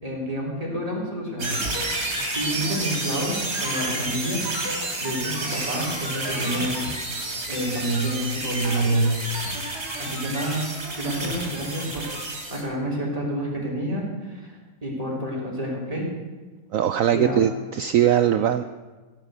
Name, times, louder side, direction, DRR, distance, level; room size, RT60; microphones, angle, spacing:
voice 1, 0.0-1.7 2.4-4.4 5.0-6.8 7.5-9.1 10.0-10.7 11.0-16.1 17.1-17.4, right 1 dB, 20° right, -4 dB, 3.6 m, -28 dB
sound 1, 1.4-12.6, right 2 dB, 55° right, 3.2 m, -30 dB
voice 2, 16.7-18.6, right 10 dB, 75° right, 11 dB, 0.7 m, -20 dB
16.5 x 6.2 x 7.9 m, 1.3 s
omnidirectional pair, 1.9 m